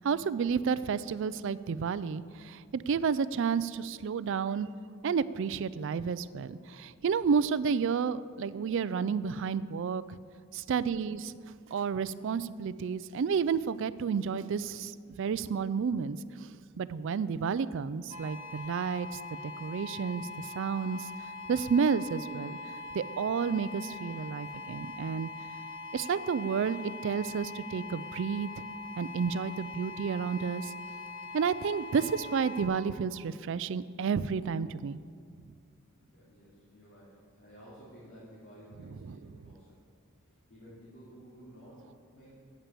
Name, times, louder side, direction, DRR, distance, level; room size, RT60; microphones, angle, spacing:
voice 1, 0.0-4.7 5.0-10.2 10.5-11.3 11.7-16.2 16.8-21.1 21.5-22.6 22.9-25.3 25.9-28.5 29.0-30.7 31.3-35.0 39.0-39.2, right 6 dB, 60° right, 17 dB, 0.3 m, -31 dB
sound 1, 18.1-32.7, left 3 dB, 85° left, 1.4 m, -42 dB
voice 2, 36.0-39.8 40.2-41.8 42.1-42.4, equal, 60° left, -9 dB, 2.6 m, -53 dB
8.9 x 8.7 x 6.9 m, 2.1 s
head